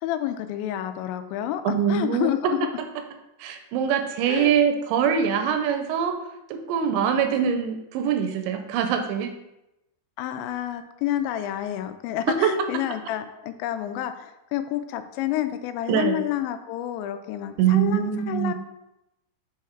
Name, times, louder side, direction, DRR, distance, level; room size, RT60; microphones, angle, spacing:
voice 1, 0.0-2.6 4.3-4.6 10.2-18.5, left 12 dB, 85° left, 9 dB, 2.8 m, -29 dB
voice 2, 1.7-2.3 3.4-6.1 6.5-9.3 12.4-12.5 15.9-16.2 17.6-18.5, right 8 dB, 85° right, 6 dB, 2.7 m, -23 dB
7.7 x 3.6 x 4.4 m, 0.92 s
omnidirectional pair, 5.2 m